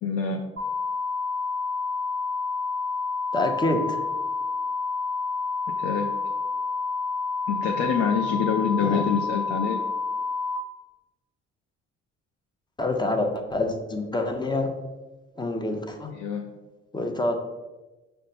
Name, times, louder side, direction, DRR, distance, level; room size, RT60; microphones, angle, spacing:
voice 1, 0.0-0.5 5.8-6.1 7.5-9.8 16.1-16.5, left 6 dB, 55° left, 3 dB, 0.5 m, -26 dB
sound 1, 0.6-10.6, left 4 dB, 40° right, 0.7 m, -29 dB
voice 2, 3.3-4.0 8.8-9.1 12.8-14.7 15.4-16.1 16.9-17.4, left 2 dB, 15° left, 5 dB, 0.7 m, -26 dB
5.1 x 2.2 x 4.0 m, 1.1 s
hypercardioid pair, 55°, 29 cm